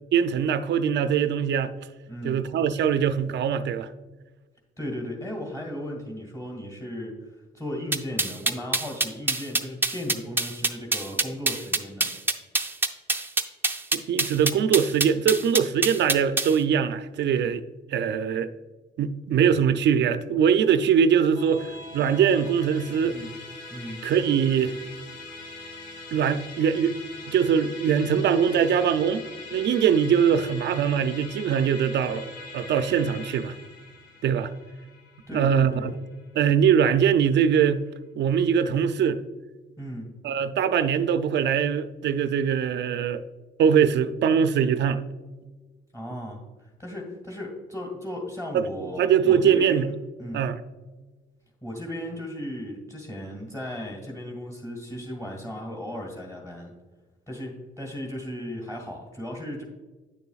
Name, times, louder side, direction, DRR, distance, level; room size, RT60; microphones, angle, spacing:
voice 1, 0.1-1.7 2.2-3.9 13.9-17.6 17.9-18.5 19.0-23.2 24.0-24.7 26.1-26.9 27.3-29.3 29.5-32.3 32.5-33.6 34.2-34.5 35.3-35.9 36.3-37.8 38.2-39.2 40.2-43.2 43.6-45.0 48.5-49.9 50.3-50.6, right 7 dB, 65° right, 0.5 m, -22 dB
voice 2, 2.1-2.4 4.8-12.1 23.0-23.3 23.7-24.0 35.3-35.9 39.8-40.1 45.9-49.9 50.2-50.5 51.6-56.7 57.3-59.6, left 1 dB, 15° left, 1.9 m, -36 dB
sound 1, 7.9-16.5, right 2 dB, 10° right, 0.6 m, -25 dB
Musical instrument, 21.3-36.9, left 2 dB, 75° left, 1.6 m, -42 dB
9.1 x 6.8 x 2.4 m
cardioid pair, 90°, 20 cm